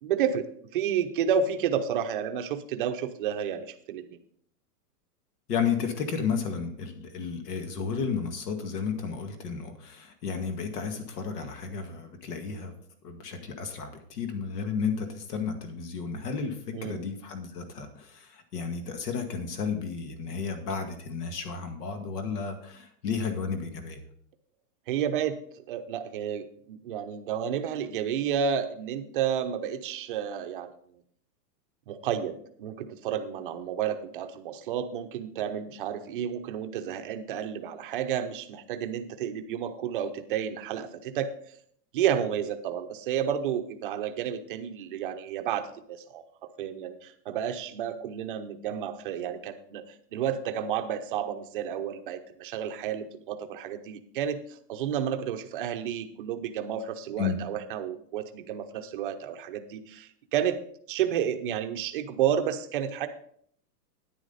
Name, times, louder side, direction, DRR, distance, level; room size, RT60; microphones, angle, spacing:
voice 1, 0.0-0.5 0.7-4.0 16.7-17.1 24.9-25.4 25.7-30.7 31.9-41.3 41.9-46.2 46.6-60.6 60.9-63.1, right 8 dB, 35° right, 7 dB, 0.7 m, -31 dB
voice 2, 5.5-12.7 13.0-24.0 57.2-57.4, left 6 dB, 70° left, 6 dB, 2.1 m, -32 dB
10.0 x 9.6 x 4.0 m, 0.64 s
supercardioid pair, 175°, 48 cm